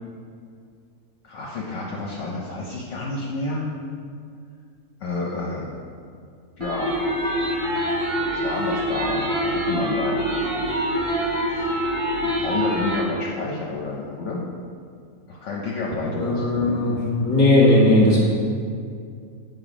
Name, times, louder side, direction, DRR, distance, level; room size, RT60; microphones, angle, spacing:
voice 1, 1.2-3.6 5.0-5.7 6.6-7.0 8.3-10.2 11.4-11.8 12.2-14.4 15.3-16.8, left 3 dB, 65° left, -4 dB, 1.0 m, -30 dB
sound 1, 6.6-13.0, equal, 45° right, 1.4 m, -25 dB
voice 2, 16.2-18.2, left 1 dB, 25° left, -5 dB, 1.6 m, -17 dB
7.0 x 4.0 x 4.9 m, 2.3 s
omnidirectional pair, 1.5 m